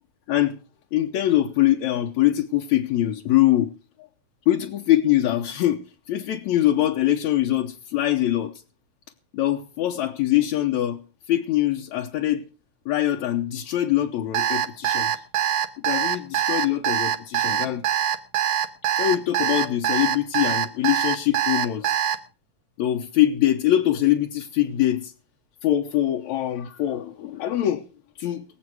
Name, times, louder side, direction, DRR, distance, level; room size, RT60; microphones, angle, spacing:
voice 1, 0.3-0.6 0.9-3.7 4.5-8.6 9.3-11.0 11.3-12.4 12.9-15.1 15.8-17.8 19.0-22.0 22.8-25.1 25.6-27.8 28.2-28.5, left 13 dB, 75° left, 2.2 m, -23 dB
Alarm, 14.3-22.2, right 10 dB, 65° right, 2.1 m, -23 dB
23.5 x 8.0 x 4.7 m
omnidirectional pair, 3.5 m